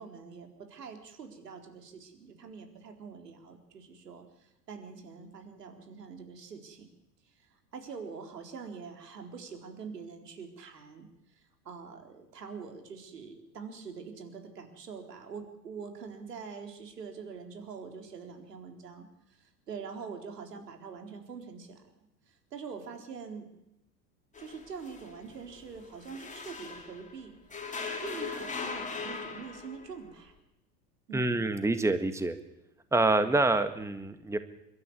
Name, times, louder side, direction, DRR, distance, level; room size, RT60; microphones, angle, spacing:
voice 1, 0.0-6.9 7.7-11.1 11.4-21.8 22.3-23.5 24.4-27.4 28.0-30.3 31.1-31.4, right 5 dB, 75° right, 5 dB, 4.0 m, -44 dB
sound 1, 24.3-27.1 27.5-30.0, left 4 dB, 15° left, 4.7 m, -39 dB
voice 2, 31.1-32.4 32.9-34.4, right 2 dB, 5° right, 10 dB, 1.8 m, -26 dB
29.5 x 13.0 x 9.8 m, 0.88 s
figure-of-eight pair, 80°, 48 cm